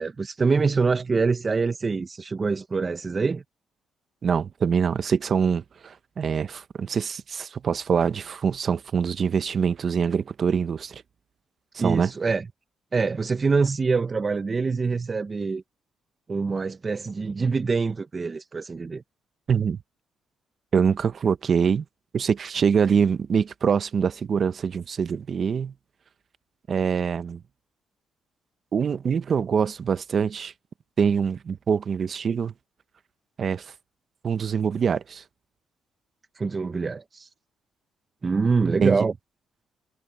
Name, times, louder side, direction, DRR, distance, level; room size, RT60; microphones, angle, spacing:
voice 1, 0.0-3.4 11.8-12.5 12.9-15.6 16.3-19.0 36.4-37.3 38.2-39.1, right 4 dB, 30° right, 0.8 m, -25 dB
voice 2, 4.2-11.0 11.7-12.1 19.5-19.8 20.7-21.8 22.1-25.7 26.7-27.4 28.7-30.5 31.0-32.5 33.4-33.7 34.2-35.2 38.8-39.0, right 6 dB, 50° right, 1.1 m, -24 dB
cardioid pair, 90°, 0 cm